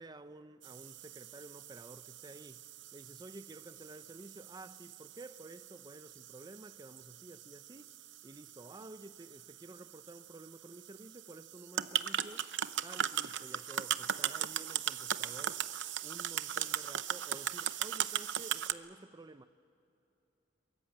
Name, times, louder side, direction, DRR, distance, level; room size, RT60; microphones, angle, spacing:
voice 1, 0.0-2.6 2.9-7.9 8.2-12.5 12.8-15.7 16.0-19.5, right 2 dB, 20° right, 0.6 m, -52 dB
sound 1, 0.6-18.7, right 9 dB, 70° right, 0.7 m, -39 dB
23.0 x 23.0 x 7.9 m
head